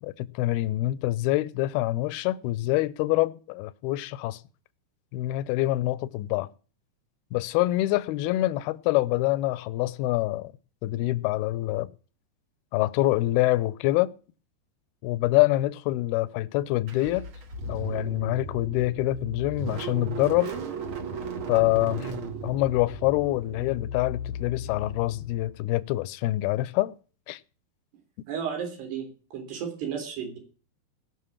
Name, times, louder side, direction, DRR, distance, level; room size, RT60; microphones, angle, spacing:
voice 1, 0.0-4.4 5.1-6.5 7.3-10.5 10.8-11.9 12.7-14.1 15.0-17.2 17.7-20.5 21.5-22.1 22.4-26.9 27.3-27.4, left 17 dB, 80° left, 2.6 m, -25 dB
Car / Engine starting, 16.9-25.6, right 1 dB, 45° right, 1.9 m, -36 dB
voice 2, 28.3-30.4, right 7 dB, 85° right, 5.5 m, -33 dB
19.0 x 6.5 x 7.2 m
omnidirectional pair, 4.6 m